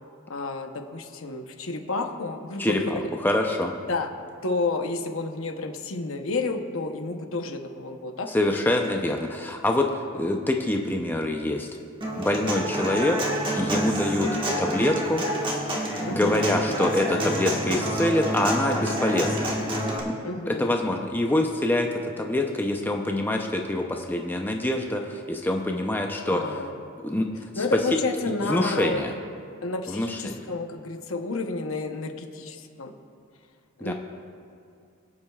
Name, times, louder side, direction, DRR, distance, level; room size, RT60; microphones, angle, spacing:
voice 1, 0.3-3.1 3.9-4.1 4.4-8.7 12.6-12.9 16.1-16.5 16.8-17.2 20.2-20.8 26.3-26.7 27.6-29.1 29.6-32.9 33.8-33.9, left 3 dB, 70° left, 5 dB, 0.9 m, -31 dB
voice 2, 2.6-3.8 8.3-11.7 12.2-13.2 13.5-14.3 14.6-15.2 16.1-19.6 20.5-26.4 27.0-27.3 28.5-29.1 29.9-30.4 33.8-33.9, left 1 dB, 10° left, 2 dB, 0.6 m, -25 dB
Human voice / Acoustic guitar, 12.0-20.0, right 1 dB, 25° right, 1.4 m, -28 dB
25.5 x 8.6 x 2.4 m, 2.4 s
head